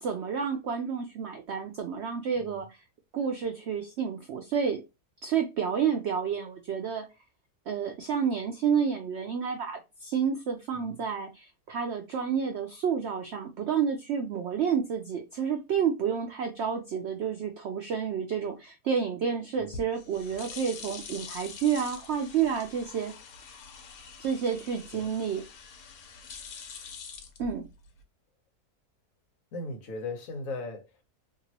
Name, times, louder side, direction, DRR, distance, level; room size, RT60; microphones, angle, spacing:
voice 1, 0.0-2.8 3.1-4.8 5.2-7.1 7.7-23.1 23.5-23.6 24.2-25.4 27.4-27.6, right 7 dB, 90° right, 0.5 m, -30 dB
sound 1, 19.6-28.0, left 5 dB, 80° left, 1.2 m, -45 dB
voice 2, 29.5-31.0, left 2 dB, 60° left, 1.2 m, -38 dB
2.9 x 2.9 x 2.7 m
omnidirectional pair, 1.7 m